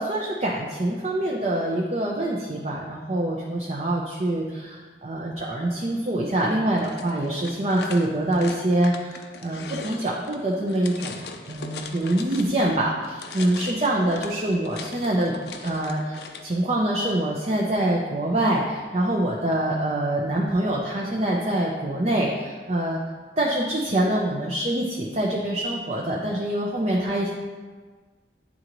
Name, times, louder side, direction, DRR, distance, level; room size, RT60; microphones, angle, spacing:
voice 1, 0.0-15.3 15.6-23.0 23.4-27.3, right 1 dB, 35° right, -2 dB, 0.6 m, -25 dB
sound 1, 6.8-12.7 13.0-16.5, left 5 dB, 65° left, 0.5 m, -40 dB
9.4 x 3.8 x 3.0 m, 1.4 s
head